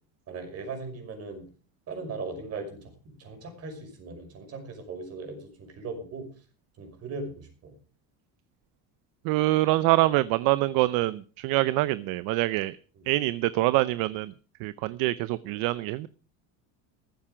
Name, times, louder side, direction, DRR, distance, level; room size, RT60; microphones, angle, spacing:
voice 1, 0.3-1.4 1.9-6.3 6.8-7.7 13.0-13.1, right 3 dB, 40° right, 5 dB, 5.8 m, -38 dB
voice 2, 9.2-12.8 13.1-14.3 14.6-16.1, right 18 dB, 65° right, 17 dB, 0.7 m, -25 dB
15.0 x 13.5 x 5.0 m, 0.38 s
cardioid pair, 145°, 37 cm